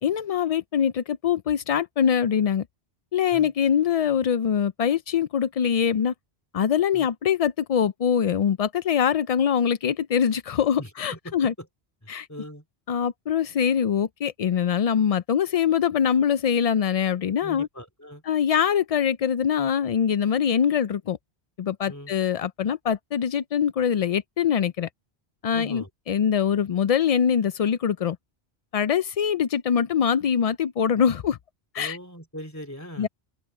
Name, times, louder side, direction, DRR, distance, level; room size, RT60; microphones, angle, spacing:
voice 1, 0.0-2.6 3.1-6.1 6.5-11.5 12.1-12.3 12.9-17.7 18.2-21.2 21.6-24.9 25.4-28.2 28.7-31.4 31.7-32.0 33.0-33.1, left 8 dB, 60° left, 0.4 m, -23 dB
voice 2, 10.8-11.7 12.0-12.6 17.4-18.2 21.9-22.1 25.5-25.9 31.8-33.1, equal, 15° left, 3.0 m, -40 dB
open air
omnidirectional pair, 1.1 m